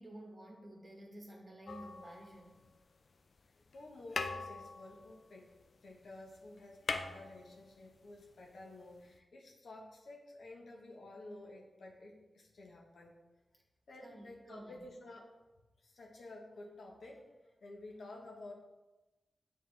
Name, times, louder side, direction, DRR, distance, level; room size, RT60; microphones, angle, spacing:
voice 1, 0.0-2.6 14.0-14.8, right 1 dB, 30° right, 0 dB, 1.1 m, -52 dB
sound 1, 1.7-2.8 3.7-3.8 4.1-6.0 6.3-6.4 6.6-8.0 9.1-9.2, left 4 dB, 65° left, 0.3 m, -41 dB
voice 2, 3.7-5.5 5.8-13.2 13.9-15.4 15.8-18.5, left 2 dB, 85° left, -1 dB, 1.0 m, -52 dB
8.1 x 3.7 x 3.2 m, 1.1 s
wide cardioid pair, 110°, 0 cm